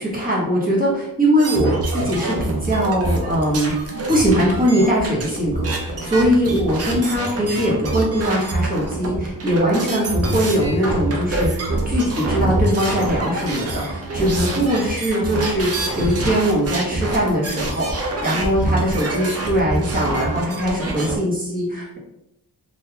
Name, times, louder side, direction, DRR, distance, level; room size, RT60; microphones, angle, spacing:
voice 1, 0.0-3.7 4.1-22.0, equal, 20° right, -5 dB, 1.2 m, -21 dB
sound 1, 1.4-21.2, right 2 dB, 40° right, 0.6 m, -25 dB
3.8 x 2.7 x 2.8 m, 0.84 s
wide cardioid pair, 145°, 39 cm